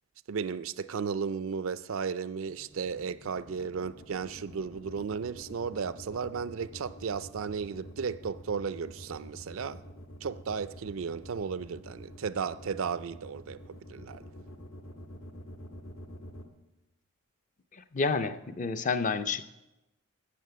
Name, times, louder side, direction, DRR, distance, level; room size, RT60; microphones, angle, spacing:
voice 1, 0.3-9.8 10.2-14.3, right 6 dB, 65° right, 0.4 m, -34 dB
sound 1, 2.5-16.4, equal, 70° left, 1.4 m, -47 dB
voice 2, 17.7-19.5, left 4 dB, 35° left, 0.5 m, -30 dB
15.5 x 6.7 x 6.7 m
head